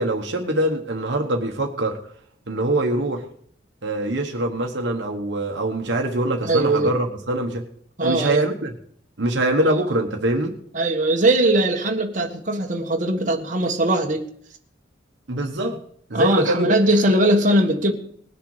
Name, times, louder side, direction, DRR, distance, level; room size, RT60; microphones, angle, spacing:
voice 1, 0.0-2.0 2.5-3.2 3.8-7.7 8.0-8.7 9.2-10.6 15.3-15.8 16.1-16.7, right 1 dB, 65° right, 2 dB, 1.2 m, -23 dB
voice 2, 6.4-6.9 8.0-8.4 10.7-14.3 16.1-17.9, right 1 dB, 40° right, 1 dB, 1.5 m, -20 dB
20.0 x 6.7 x 4.8 m, 0.62 s
head